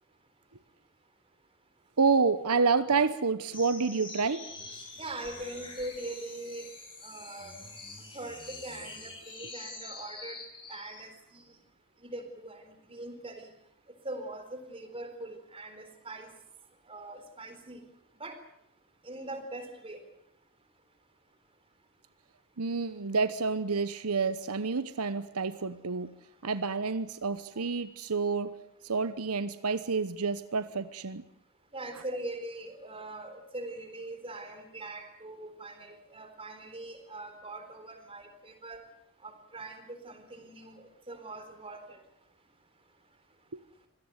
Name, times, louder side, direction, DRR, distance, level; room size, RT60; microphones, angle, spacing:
voice 1, 2.0-4.5 22.6-26.1 26.4-28.6 28.8-31.2, right 4 dB, 85° right, 13 dB, 1.0 m, -29 dB
sound 1, 3.5-11.1, left 3 dB, 25° left, 7.6 m, -46 dB
voice 2, 5.0-6.7 7.0-7.5 8.1-10.4 10.7-11.4 12.0-13.5 14.0-16.3 16.9-17.8 18.2-18.4 19.0-20.0 31.7-38.8 39.2-42.0, right 2 dB, 25° right, 8 dB, 3.9 m, -42 dB
25.0 x 18.0 x 8.1 m, 0.72 s
head